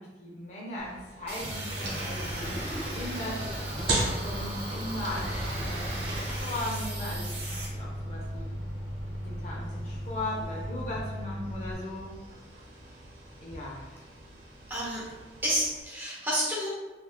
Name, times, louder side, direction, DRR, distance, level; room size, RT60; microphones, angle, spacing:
voice 1, 0.0-3.4 4.0-8.5 9.2-12.1 13.4-14.0, left 1 dB, 40° left, -4 dB, 0.7 m, -38 dB
sound 1, 0.8-15.8, right 1 dB, 75° right, 0.9 m, -39 dB
sound 2, 1.3-7.6, right 1 dB, 35° right, 1.1 m, -38 dB
Microwave oven, 1.4-11.7, equal, 90° left, 1.3 m, -37 dB
voice 2, 14.7-15.0 15.4-16.7, equal, 10° right, -7 dB, 0.9 m, -29 dB
3.4 x 3.2 x 2.3 m, 1.2 s
head